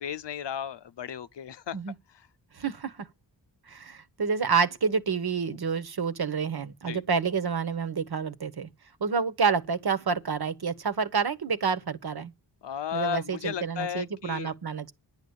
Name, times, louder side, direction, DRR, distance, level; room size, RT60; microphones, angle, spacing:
voice 1, 0.0-1.8 6.9-7.0 12.6-14.5, left 8 dB, 80° left, 0.7 m, -34 dB
voice 2, 2.5-3.1 3.7-8.7 9.0-12.3 12.9-14.9, right 5 dB, 60° right, 1.3 m, -28 dB
10.5 x 8.2 x 8.1 m
wide cardioid pair, 95°, 42 cm